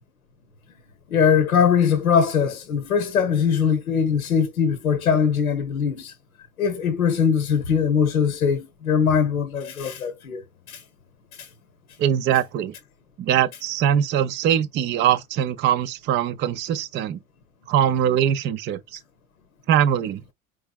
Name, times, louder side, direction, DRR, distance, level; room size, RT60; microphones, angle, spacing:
voice 1, 1.1-6.1 6.6-10.4 10.7-10.8 11.4-11.5, left 7 dB, 80° left, 0.8 m, -21 dB
voice 2, 12.0-12.7 13.2-17.2 17.7-19.0 19.7-20.2, right 9 dB, 25° right, 0.4 m, -22 dB
4.4 x 3.7 x 2.3 m
figure-of-eight pair, 70°, 42 cm